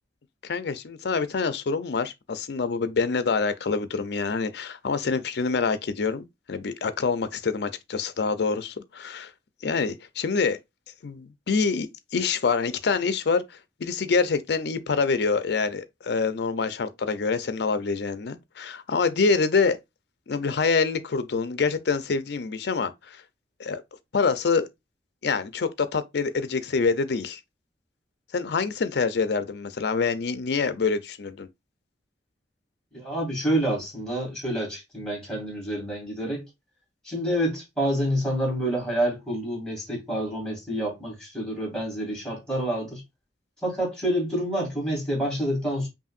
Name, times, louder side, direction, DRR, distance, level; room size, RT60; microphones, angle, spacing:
voice 1, 0.4-9.3 9.6-10.6 11.0-13.4 13.8-19.8 20.3-23.2 23.6-23.8 24.1-24.7 25.2-27.4 28.3-31.5, left 4 dB, 65° left, 0.5 m, -26 dB
voice 2, 32.9-36.4 37.0-43.0 43.6-45.9, right 1 dB, 5° left, 2.3 m, -28 dB
5.4 x 2.5 x 2.4 m
head